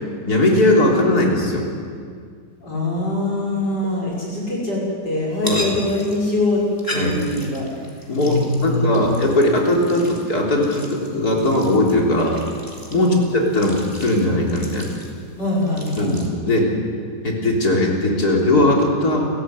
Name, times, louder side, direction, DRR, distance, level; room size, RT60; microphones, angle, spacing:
voice 1, 0.3-1.7 5.4-5.8 6.9-7.2 8.1-12.4 12.9-14.9 16.0-16.7 17.2-19.3, left 1 dB, 65° left, -1 dB, 4.1 m, -19 dB
voice 2, 2.6-6.6 6.9-7.8 8.2-9.2 12.9-13.2 15.4-16.2, left 2 dB, 85° left, -5 dB, 7.1 m, -23 dB
sound 1, 5.3-16.3, left 1 dB, 10° left, 3.4 m, -37 dB
29.5 x 14.0 x 8.1 m, 2.1 s
omnidirectional pair, 1.8 m